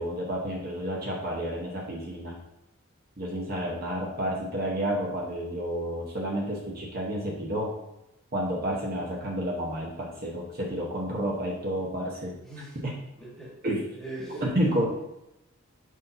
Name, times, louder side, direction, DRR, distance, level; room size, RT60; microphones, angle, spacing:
voice 1, 0.0-2.4 3.2-7.7 8.3-12.3 12.8-12.9 13.6-13.8 14.4-14.8, equal, 45° right, -3 dB, 1.0 m, -30 dB
voice 2, 12.4-12.8 13.2-13.5 14.0-14.8, right 1 dB, ahead, -5 dB, 1.5 m, -40 dB
6.4 x 5.8 x 2.7 m, 0.89 s
head